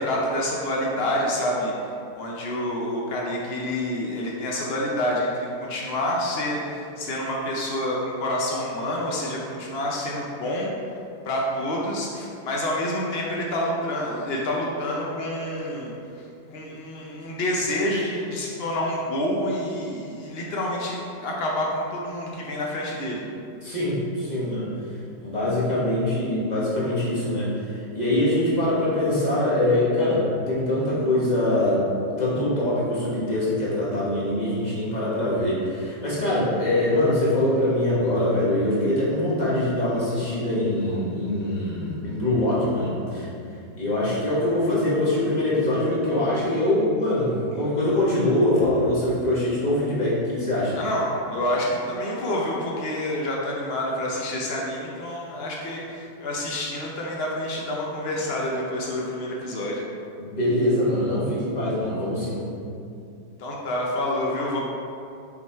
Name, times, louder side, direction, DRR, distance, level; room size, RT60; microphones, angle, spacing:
voice 1, 0.0-1.7 2.2-10.7 11.2-15.9 16.5-23.2 50.7-59.8 63.4-64.6, left 1 dB, 80° left, -3 dB, 0.5 m, -28 dB
voice 2, 23.6-24.7 25.2-31.9 32.2-43.3 43.8-50.8 60.2-62.4, left 1 dB, 25° left, -8 dB, 1.5 m, -23 dB
5.9 x 4.0 x 4.4 m, 2.6 s
omnidirectional pair, 2.0 m